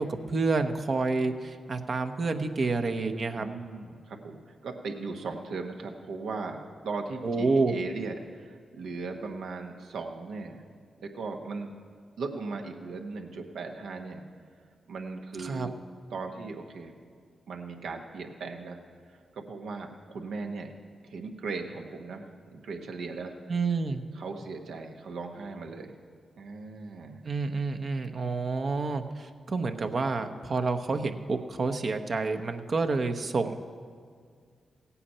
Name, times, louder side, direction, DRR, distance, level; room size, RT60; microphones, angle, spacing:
voice 1, 0.0-3.5 7.2-7.7 15.4-15.7 23.5-24.0 27.2-33.6, right 3 dB, 55° right, 6 dB, 0.9 m, -29 dB
voice 2, 3.4-10.6 11.0-11.7 12.2-14.2 14.9-15.7 16.1-16.9 17.5-18.8 19.1-20.7 21.0-23.3 24.1-25.9 26.4-27.2, right 4 dB, 80° right, 3 dB, 1.2 m, -38 dB
17.0 x 8.4 x 5.6 m, 2.1 s
supercardioid pair, 50°, 0 cm